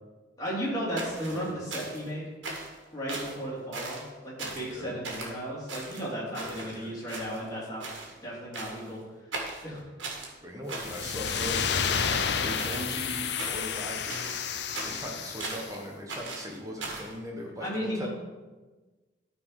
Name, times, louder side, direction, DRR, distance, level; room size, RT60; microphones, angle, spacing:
voice 1, 0.4-2.3 2.9-7.8 8.2-9.0 9.6-9.8 12.5-12.6 17.6-18.1, equal, 20° left, -6 dB, 2.7 m, -34 dB
sound 1, 1.0-2.1 2.4-2.8 3.1-3.4 3.7-4.1 4.4-4.7 5.0-5.3 5.7-6.8 7.1-7.6 7.8-8.1 8.5-8.9 9.3-10.3 10.7-11.6 11.9-13.0 13.4-13.8 14.1-15.8 16.1-17.1, right 3 dB, 80° right, 2.0 m, -39 dB
voice 2, 6.3-7.0 10.4-11.7 12.1-14.4 14.8-18.1, equal, 15° right, -1 dB, 1.3 m, -39 dB
sound 2, 10.8-15.7, left 7 dB, 60° left, 0.5 m, -31 dB
12.5 x 4.5 x 4.9 m, 1.3 s
head